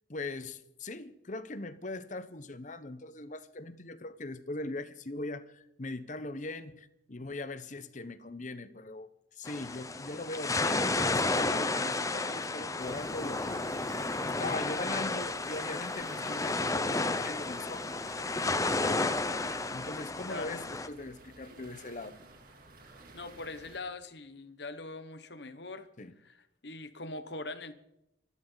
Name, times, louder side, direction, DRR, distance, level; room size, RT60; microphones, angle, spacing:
voice 1, 0.1-13.7 14.2-17.8 18.8-19.0 19.7-22.2 26.0-26.1, left 2 dB, 40° left, 13 dB, 1.0 m, -40 dB
sound 1, 9.4-20.9, left 3 dB, 15° left, 0.7 m, -32 dB
sound 2, 12.8-23.8, right 2 dB, 50° right, 2.9 m, -53 dB
voice 2, 23.1-25.9 26.2-26.4 26.6-27.7, left 2 dB, 60° left, 11 dB, 1.3 m, -42 dB
25.0 x 12.5 x 4.0 m, 0.82 s
head